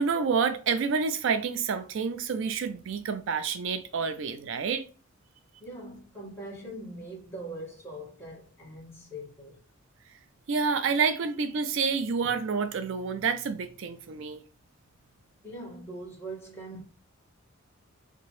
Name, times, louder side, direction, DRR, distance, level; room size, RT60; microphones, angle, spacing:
voice 1, 0.0-4.8 10.5-14.4, right 5 dB, 65° right, 0.4 m, -28 dB
voice 2, 5.6-9.6 15.4-16.8, right 1 dB, 15° left, 1.6 m, -42 dB
3.4 x 2.9 x 3.1 m
head